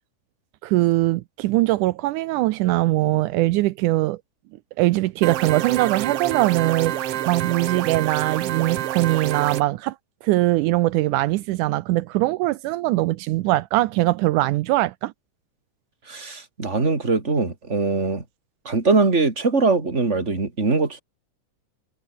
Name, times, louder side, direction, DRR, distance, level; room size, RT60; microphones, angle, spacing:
voice 1, 0.6-4.2 4.8-10.0 10.2-15.1, right 18 dB, 80° right, 2.2 m, -21 dB
sound 1, 5.2-9.6, right 12 dB, 65° right, 1.7 m, -27 dB
voice 2, 16.1-18.2 18.7-21.0, right 3 dB, 20° right, 3.7 m, -22 dB
omnidirectional pair, 3.6 m